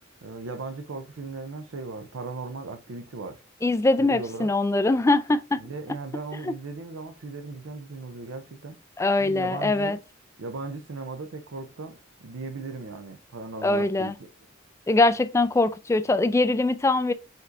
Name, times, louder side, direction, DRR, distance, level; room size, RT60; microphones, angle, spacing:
voice 1, 0.2-3.4 4.0-4.5 5.6-8.8 9.2-10.0 10.4-14.3, right 3 dB, 70° right, 0.6 m, -37 dB
voice 2, 3.6-5.6 6.5-6.6 9.0-10.0 13.6-14.1 14.9-17.1, left 2 dB, 15° left, 0.3 m, -22 dB
5.2 x 3.9 x 2.5 m
head